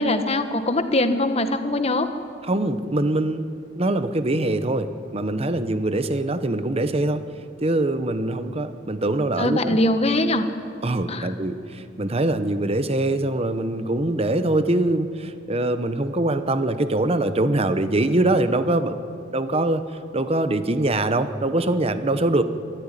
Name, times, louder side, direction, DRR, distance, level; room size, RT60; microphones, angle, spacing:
voice 1, 0.0-2.1 9.4-10.5 11.1-11.3, left 1 dB, 35° left, 8 dB, 1.4 m, -22 dB
voice 2, 2.5-7.2 7.6-9.8 10.8-19.0 19.3-19.8 20.1-22.4, right 2 dB, 30° right, 11 dB, 1.0 m, -23 dB
24.0 x 13.5 x 9.9 m, 2.5 s
head